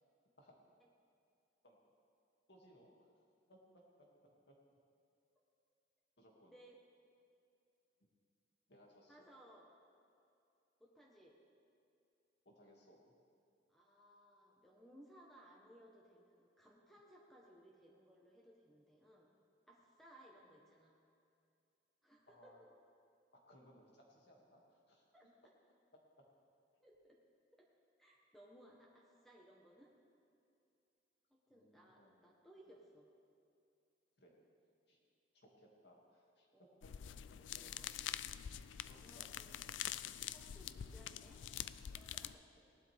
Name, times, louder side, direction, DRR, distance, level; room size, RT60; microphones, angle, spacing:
voice 1, 2.5-3.1 3.5-4.6 6.2-6.5 8.7-9.3 12.4-13.1 22.3-22.6 23.3-25.3 26.2-26.3 31.5-32.4 32.7-32.8 34.2-34.4 34.9-35.0 35.3-37.6 38.8-39.4 42.5-42.6, equal, 65° left, -1 dB, 2.4 m, -65 dB
voice 2, 6.5-6.8 9.1-9.7 10.8-11.4 13.7-19.3 19.7-21.0 22.0-22.7 25.1-25.2 26.8-27.2 27.5-27.7 28.0-29.9 31.3-33.1 36.5-36.8 37.3-37.9 38.8-39.8 40.3-41.4 41.7-42.5, right 1 dB, ahead, -3 dB, 1.2 m, -63 dB
sound 1, 36.8-42.4, left 10 dB, 85° left, 0.4 m, -46 dB
18.0 x 12.0 x 3.5 m, 2.5 s
head